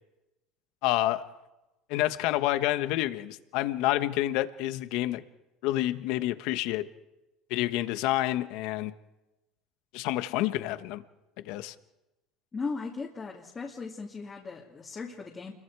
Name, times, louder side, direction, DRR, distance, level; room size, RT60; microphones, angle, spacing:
voice 1, 0.8-1.2 1.9-5.2 5.6-6.9 7.5-8.9 9.9-11.0 11.4-11.7, left 15 dB, 65° left, 11 dB, 1.2 m, -28 dB
voice 2, 12.5-15.5, left 4 dB, 20° left, -2 dB, 2.4 m, -37 dB
29.5 x 22.5 x 4.8 m, 1.0 s
cardioid pair, 155°, 0 cm